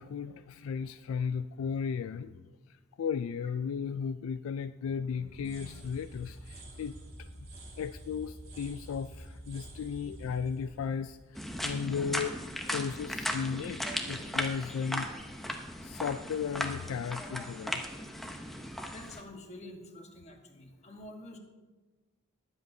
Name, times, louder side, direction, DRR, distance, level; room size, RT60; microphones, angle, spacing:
voice 1, 0.0-2.5 3.0-7.3 7.8-12.4 12.7-15.1 15.8-17.8, left 6 dB, 75° left, 11 dB, 0.3 m, -35 dB
sound 1, 5.2-12.1, right 1 dB, 50° right, 3.2 m, -48 dB
sound 2, 11.3-19.2, equal, ahead, 0.7 m, -37 dB
voice 2, 18.8-21.4, left 1 dB, 30° left, 3 dB, 1.2 m, -48 dB
20.5 x 7.7 x 2.7 m, 1.2 s
head